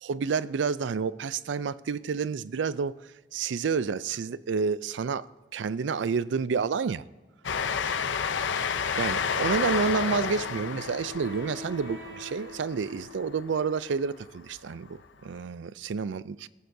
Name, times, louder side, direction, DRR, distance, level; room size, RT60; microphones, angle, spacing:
voice 1, 0.0-2.9 3.3-5.3 5.5-7.0 9.0-16.5, right 5 dB, 80° right, 0.4 m, -29 dB
Train, 7.4-13.6, left 6 dB, 85° left, 0.6 m, -30 dB
Wind instrument woodwind instrument, 9.4-14.2, left 1 dB, 60° right, 1.1 m, -46 dB
22.0 x 13.0 x 2.7 m
head